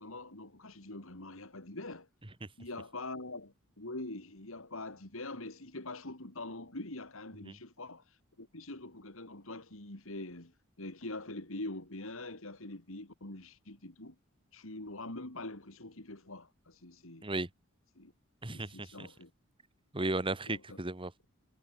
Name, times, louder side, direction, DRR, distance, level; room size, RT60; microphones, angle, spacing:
voice 1, 0.0-2.1 2.6-14.2 14.5-17.3 18.0-18.1 18.5-19.3 20.5-20.8, left 2 dB, 65° left, 3.4 m, -44 dB
voice 2, 18.4-19.1 19.9-21.2, right 2 dB, 25° right, 1.6 m, -35 dB
head